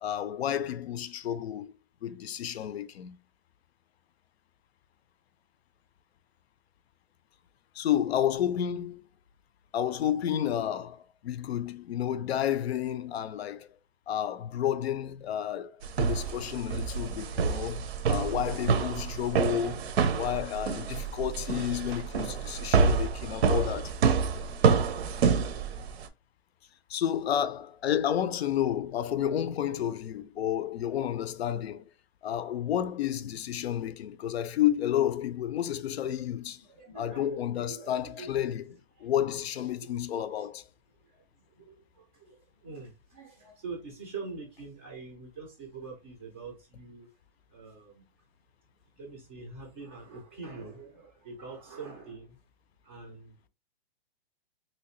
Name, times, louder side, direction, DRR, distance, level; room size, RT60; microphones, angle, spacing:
voice 1, 0.0-1.7 2.0-3.2 7.8-9.0 9.7-13.7 14.1-15.7 16.0-19.8 20.1-23.9 26.9-31.9 32.2-36.6 37.0-38.7 39.0-40.6, left 10 dB, 90° left, 0.5 m, -31 dB
sound 1, 15.8-26.1, right 5 dB, 85° right, 0.6 m, -27 dB
voice 2, 19.3-19.8 22.0-22.7 36.6-38.5 39.0-39.1 39.6-40.5 41.1-41.2 41.6-47.1 47.5-48.1 49.0-52.4 52.8-53.5, right 4 dB, 15° right, 0.3 m, -45 dB
3.0 x 2.8 x 3.0 m
hypercardioid pair, 160°, 31 cm